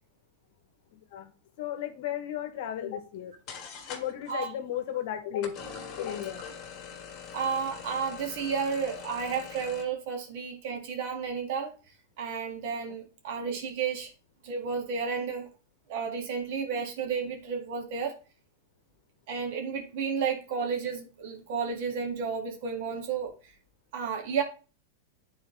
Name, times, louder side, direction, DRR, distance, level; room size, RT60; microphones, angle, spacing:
voice 1, 0.9-3.4 3.8-5.6 5.9-6.4, left 10 dB, 65° left, 1.0 m, -35 dB
sound 1, 3.1-3.2 3.5-4.3 5.4-9.8, left 7 dB, 40° left, 1.6 m, -43 dB
voice 2, 7.3-11.7 12.2-14.1 14.4-15.5 15.9-18.1 19.3-23.5 23.9-24.4, right 6 dB, 65° right, 1.9 m, -32 dB
9.4 x 4.2 x 3.2 m
hypercardioid pair, 120°, 0 cm